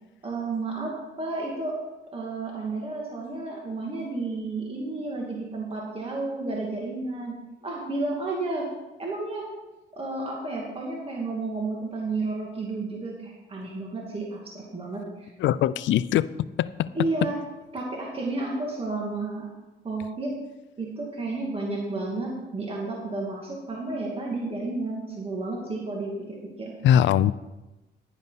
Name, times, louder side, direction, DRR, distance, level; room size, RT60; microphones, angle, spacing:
voice 1, 0.2-1.7 2.1-7.3 7.6-8.7 9.0-9.5 9.9-15.3 16.9-17.4 17.7-19.5 19.8-20.3 20.8-26.3 26.6-26.7, right 3 dB, 30° right, -2 dB, 2.5 m, -31 dB
voice 2, 15.4-16.3 16.6-16.9 26.8-27.3, left 10 dB, 70° left, 17 dB, 0.5 m, -21 dB
10.5 x 10.5 x 4.1 m, 1.1 s
cardioid pair, 90°, 20 cm